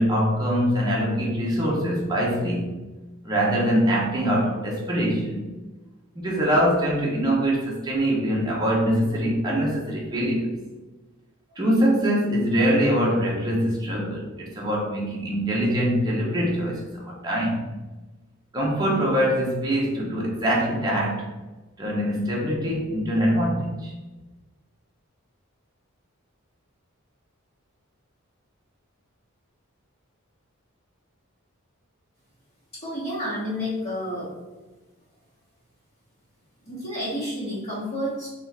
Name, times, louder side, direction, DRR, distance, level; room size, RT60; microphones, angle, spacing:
voice 1, 0.0-2.8 3.2-5.5 6.2-10.5 11.6-17.7 18.5-21.3 21.8-23.9, equal, 20° right, -4 dB, 0.8 m, -23 dB
voice 2, 32.8-34.3 36.6-38.3, equal, 30° left, -11 dB, 1.3 m, -30 dB
3.6 x 2.5 x 4.2 m, 1.2 s
head